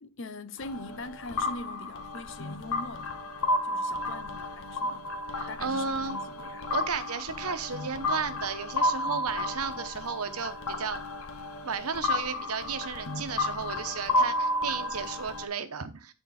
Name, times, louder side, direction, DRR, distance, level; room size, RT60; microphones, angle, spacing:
voice 1, 0.0-3.3 3.6-5.1 5.5-6.7, left 2 dB, 55° left, 0.8 m, -42 dB
sound 1, 0.6-15.5, left 2 dB, 80° left, 1.3 m, -32 dB
voice 2, 5.3-6.2 6.7-11.0 11.6-16.1, right 5 dB, 90° right, 1.1 m, -34 dB
10.0 x 4.5 x 4.3 m
head